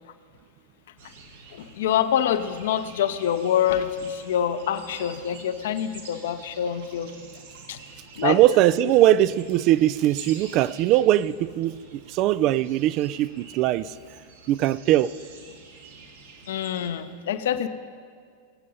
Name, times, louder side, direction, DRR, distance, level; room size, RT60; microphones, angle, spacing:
sound 1, 1.0-16.9, right 4 dB, 60° right, 1.8 m, -47 dB
voice 1, 1.5-7.1 7.7-7.8 8.2-8.4 16.5-17.7, left 9 dB, 60° left, 11 dB, 0.7 m, -26 dB
voice 2, 8.2-13.9 14.5-15.1, right 13 dB, 40° right, 18 dB, 0.3 m, -21 dB
22.5 x 8.5 x 5.4 m, 2.1 s
figure-of-eight pair, 90°, 0 cm